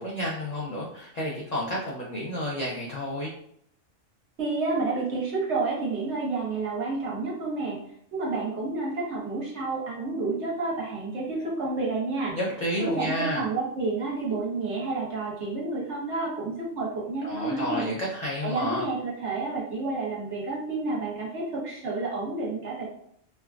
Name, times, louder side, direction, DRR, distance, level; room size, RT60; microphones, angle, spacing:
voice 1, 0.0-3.3 12.3-13.5 17.2-18.8, equal, 60° left, -4 dB, 0.4 m, -30 dB
voice 2, 4.4-7.8 8.1-12.3 12.8-17.9 18.4-22.9, right 3 dB, 60° right, -4 dB, 1.2 m, -30 dB
3.3 x 2.2 x 2.3 m, 0.70 s
omnidirectional pair, 1.3 m